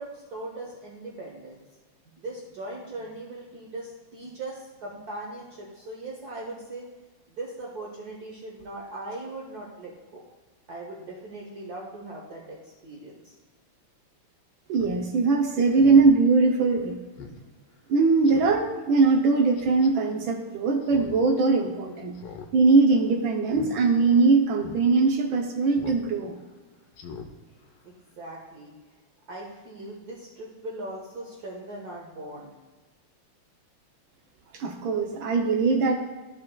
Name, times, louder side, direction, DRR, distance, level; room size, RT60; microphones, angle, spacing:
voice 1, 0.0-1.6 2.1-6.9 7.4-10.3 10.7-13.3 27.8-28.7 29.3-32.5, right 2 dB, 55° right, -3 dB, 1.4 m, -39 dB
Speech synthesizer, 14.7-15.0 15.3-15.4 15.8-16.1 16.5-16.6 17.2-17.4 17.7-17.8 18.2-18.6 19.6-19.9 20.8-21.2 21.5-21.6 22.1-22.5 22.8-23.0 23.5-23.7 24.1-24.2 24.6-24.8 25.8-26.0 26.4-26.5 26.9-27.3 27.6-27.7, left 5 dB, 85° left, 1.6 m, -42 dB
voice 2, 14.7-17.0 17.9-22.1 22.5-26.3 34.5-36.0, right 4 dB, 70° right, 2 dB, 1.5 m, -21 dB
14.0 x 5.5 x 2.3 m, 1.3 s
omnidirectional pair, 2.4 m